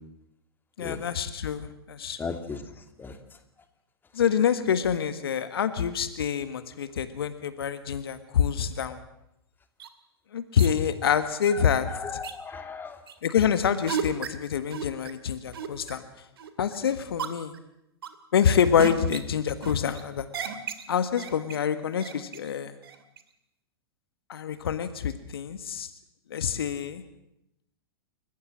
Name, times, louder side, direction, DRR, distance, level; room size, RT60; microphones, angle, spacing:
voice 1, 0.8-2.3 4.1-9.0 10.3-11.9 13.2-16.0 16.6-17.5 18.3-20.3 20.9-22.8 24.3-25.9 26.3-27.0, left 8 dB, 70° left, 11 dB, 1.6 m, -26 dB
voice 2, 2.2-2.6 3.0-3.2 11.5-13.0, left 5 dB, 15° left, 8 dB, 2.5 m, -36 dB
sound 1, 9.8-9.9 10.6-10.7 11.4-11.5 12.2-12.4 13.1-13.2 13.9-14.3 14.7-15.1 15.5-15.9 16.4-16.8 17.2-17.6 18.0-18.4 18.8-19.2 19.6-20.0 20.3-20.8 21.2-21.7 22.0-22.5 22.8-23.2, right 7 dB, 70° right, 2.4 m, -34 dB
29.0 x 15.0 x 7.5 m, 0.85 s
figure-of-eight pair, 100°, 13 cm